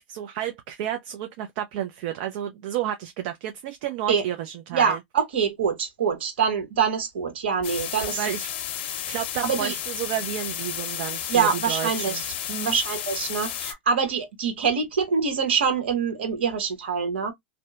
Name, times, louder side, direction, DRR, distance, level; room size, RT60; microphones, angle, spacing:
voice 1, 0.0-5.0 8.0-8.5 9.1-12.2 12.5-12.8, right 11 dB, 60° right, 0.5 m, -31 dB
voice 2, 4.7-8.3 9.4-9.7 11.3-12.2 12.6-17.3, right 6 dB, 85° right, 1.1 m, -25 dB
sound 1, 7.6-13.7, left 10 dB, 70° left, 0.6 m, -32 dB
2.7 x 2.1 x 2.2 m
hypercardioid pair, 115°, 6 cm